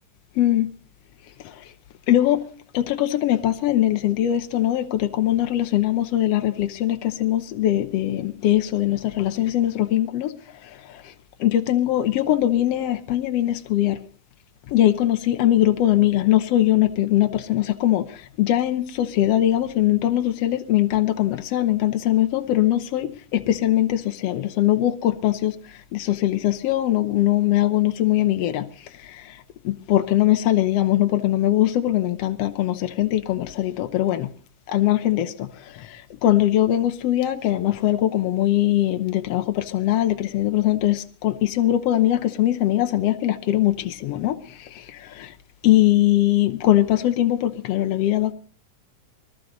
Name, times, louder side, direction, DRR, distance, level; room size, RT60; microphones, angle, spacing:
voice 1, 0.4-0.7 2.1-2.4 2.7-10.3 10.9-11.0 11.4-14.0 14.7-25.5 25.9-28.7 29.1-29.3 29.6-34.3 34.7-35.5 35.7-45.3 45.6-48.3, left 13 dB, 70° left, 1.5 m, -21 dB
21.5 x 14.0 x 4.0 m
omnidirectional pair, 3.8 m